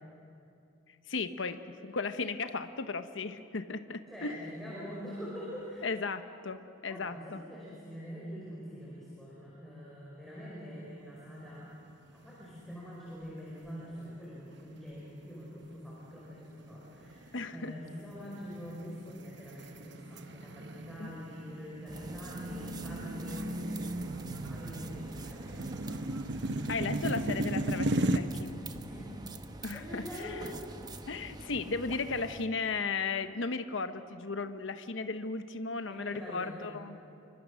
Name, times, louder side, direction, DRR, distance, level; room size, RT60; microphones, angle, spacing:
voice 1, 1.1-4.4 5.8-7.4 17.3-17.7 21.0-21.1 26.7-28.5 29.6-30.4 31.1-37.0, left 4 dB, 75° left, 10 dB, 0.9 m, -35 dB
voice 2, 4.1-6.0 6.9-11.7 12.1-23.5 24.5-26.2 28.8-29.0 29.7-30.7 35.9-36.7, equal, ahead, -7 dB, 5.1 m, -44 dB
sound 1, 11.7-12.3 12.6-12.7 13.4-13.9 14.5-14.7 15.3-28.2, right 1 dB, 60° right, 1.0 m, -36 dB
sound 2, 21.9-32.5, right 2 dB, 20° right, 0.9 m, -46 dB
28.5 x 24.0 x 6.3 m, 2.7 s
head